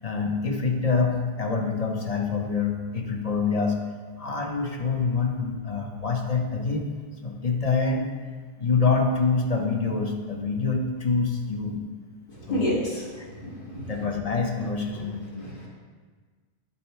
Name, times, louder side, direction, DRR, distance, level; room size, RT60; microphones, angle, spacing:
voice 1, 0.0-3.8 4.2-6.9 7.2-8.1 8.6-11.8 12.5-12.8 13.2-13.3 13.9-15.7, left 4 dB, 40° left, 2 dB, 0.9 m, -26 dB
voice 2, 12.4-13.1 13.4-13.9 15.4-15.7, equal, 55° left, -6 dB, 2.3 m, -29 dB
10.0 x 4.4 x 4.5 m, 1.5 s
omnidirectional pair, 1.0 m